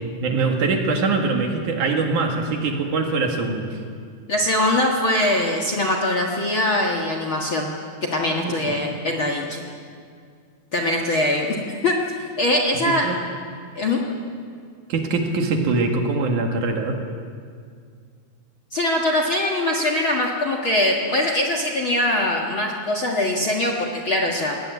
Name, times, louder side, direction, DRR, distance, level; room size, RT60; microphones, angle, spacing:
voice 1, 0.2-3.8 8.4-8.7 12.9-13.2 14.9-17.0, right 3 dB, 60° right, 3 dB, 3.1 m, -23 dB
voice 2, 4.3-7.7 8.1-9.6 10.7-12.0 12.4-13.1 13.8-14.0 18.7-24.6, left 1 dB, 45° left, 2 dB, 1.8 m, -22 dB
21.5 x 18.0 x 9.6 m, 2.2 s
omnidirectional pair, 4.4 m